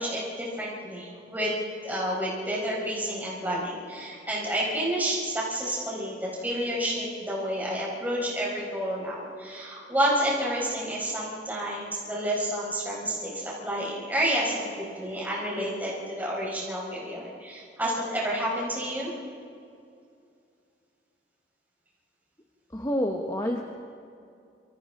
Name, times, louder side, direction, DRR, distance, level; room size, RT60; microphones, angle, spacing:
voice 1, 0.0-19.1, equal, 10° right, -5 dB, 4.7 m, -30 dB
voice 2, 22.7-23.6, equal, 20° left, 2 dB, 1.0 m, -28 dB
28.5 x 27.0 x 3.8 m, 2.4 s
head